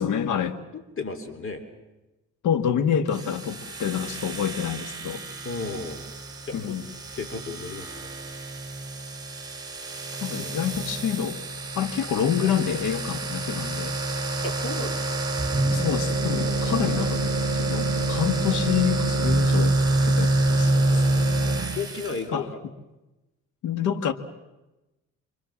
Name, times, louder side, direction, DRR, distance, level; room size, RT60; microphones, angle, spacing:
voice 1, 0.0-0.6 2.4-5.2 6.5-6.9 10.2-11.4 11.8-14.0 15.7-19.8 20.0-21.0 22.3-22.5 23.6-24.1, left 8 dB, 80° left, 9 dB, 1.9 m, -27 dB
voice 2, 0.7-1.7 5.5-6.0 6.5-6.8 7.2-8.1 10.4-10.6 14.4-15.2 21.8-22.6, left 4 dB, 45° left, 9 dB, 3.6 m, -34 dB
sound 1, 3.1-22.2, right 2 dB, 15° right, 4.9 m, -27 dB
29.0 x 24.5 x 7.4 m, 1.0 s
cardioid pair, 90°, 30 cm